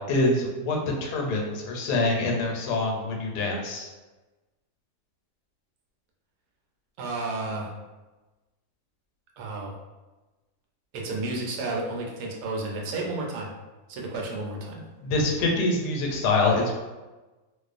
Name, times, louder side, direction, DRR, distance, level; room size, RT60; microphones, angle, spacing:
voice 1, 0.1-3.9 15.0-16.7, left 2 dB, 85° left, 0 dB, 1.2 m, -25 dB
voice 2, 7.0-7.7 9.4-9.8 10.9-13.5 13.9-14.8, right 2 dB, 80° right, -1 dB, 1.1 m, -32 dB
2.4 x 2.4 x 2.4 m, 1.2 s
omnidirectional pair, 1.7 m